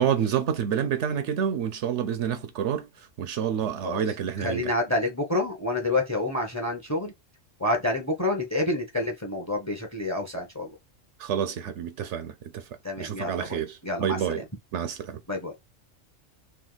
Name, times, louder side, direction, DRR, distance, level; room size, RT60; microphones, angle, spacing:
voice 1, 0.0-4.6 11.2-12.6 13.0-14.4 14.7-15.2, right 8 dB, 70° right, 0.9 m, -28 dB
voice 2, 4.4-7.1 7.6-10.7 12.8-14.4 15.3-15.5, left 2 dB, 15° left, 0.8 m, -28 dB
3.3 x 2.6 x 3.9 m
omnidirectional pair, 1.3 m